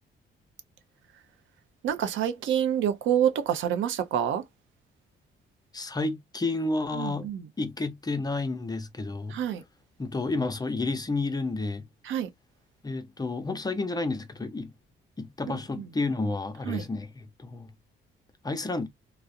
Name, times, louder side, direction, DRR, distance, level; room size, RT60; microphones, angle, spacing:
voice 1, 1.8-4.4 6.9-7.4 9.3-9.6 12.1-12.3 16.7-16.8, right 9 dB, 75° right, 0.6 m, -27 dB
voice 2, 5.7-7.3 7.6-9.4 10.0-11.9 12.8-14.7 15.2-17.7 18.4-18.9, left 3 dB, 20° left, 0.5 m, -31 dB
2.4 x 2.0 x 2.5 m
cardioid pair, 90°, 20 cm